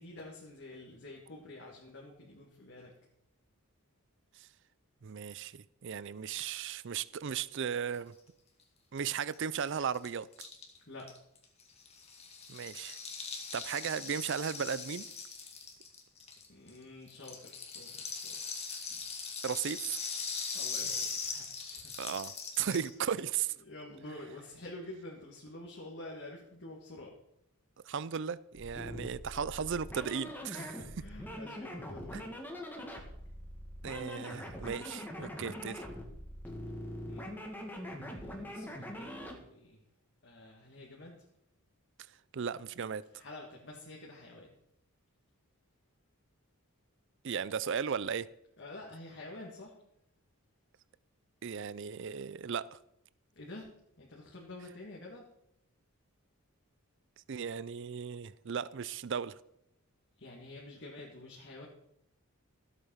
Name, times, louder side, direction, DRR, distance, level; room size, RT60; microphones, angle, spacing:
voice 1, 0.0-2.9 10.9-11.1 16.5-18.7 20.5-22.0 23.2-23.3 23.6-27.1 30.5-32.3 37.1-37.4 37.8-39.8 40.2-41.3 43.1-44.5 48.6-49.8 53.4-53.7 54.0-55.2 60.2-61.7, left 2 dB, 55° left, 2.1 m, -48 dB
voice 2, 5.0-8.1 8.9-10.3 12.5-13.0 13.5-15.1 19.4-20.0 22.0-23.5 27.9-30.6 33.8-35.9 42.3-43.0 47.2-48.3 51.4-52.8 57.3-59.4, right 7 dB, 55° right, 0.4 m, -36 dB
Rattle (instrument), 9.1-9.2 9.3-9.4 9.6-16.8 17.1-22.9, left 5 dB, 30° left, 2.0 m, -40 dB
sound 1, 28.5-39.4, equal, 10° left, 1.8 m, -43 dB
14.5 x 8.2 x 5.7 m
head